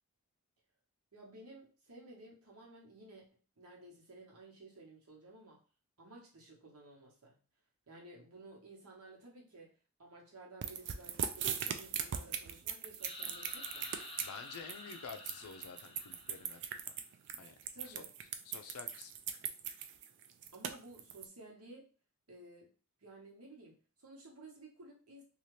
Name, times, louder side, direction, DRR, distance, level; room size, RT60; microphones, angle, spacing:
voice 1, 1.1-3.3 3.6-5.6 6.0-7.4 7.9-14.1 17.7-18.1 20.5-21.9 22.3-22.7 23.0-25.2, right 2 dB, 75° right, -2 dB, 1.2 m, -55 dB
sound 1, 10.6-21.3, right 8 dB, 55° right, 0.3 m, -39 dB
sound 2, 13.0-16.8, left 2 dB, 25° left, 0.5 m, -50 dB
voice 2, 14.2-16.6 17.4-17.6 17.9-18.0 18.5-19.1, left 6 dB, 80° left, 8 dB, 0.5 m, -49 dB
2.8 x 2.4 x 3.2 m, 0.37 s
head